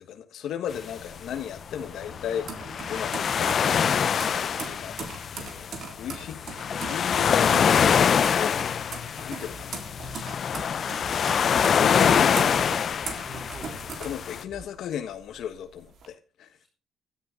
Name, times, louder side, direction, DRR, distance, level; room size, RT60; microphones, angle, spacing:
voice 1, 0.0-3.8 4.2-5.7 6.0-8.8 9.1-9.9 10.7-10.8 11.6-12.5 14.0-16.5, left 9 dB, 65° left, 1.3 m, -35 dB
sound 1, 0.7-14.4, left 7 dB, 40° left, 0.5 m, -25 dB
sound 2, 1.0-14.8 15.2-16.1, right 5 dB, 50° right, 3.7 m, -40 dB
voice 2, 4.8-5.7 6.2-7.6 13.2-13.8 16.6-16.7, left 1 dB, 10° right, 4.3 m, -48 dB
sound 3, 9.5-9.6 10.0-10.1 10.5-10.6 11.0-11.1 11.5-11.6 12.0-12.1 12.5-12.6 13.0-13.1 13.5-13.6 14.0-14.1 14.5-14.6, right 3 dB, 35° right, 4.1 m, -45 dB
16.0 x 11.0 x 3.7 m
cardioid pair, 150°, 0 cm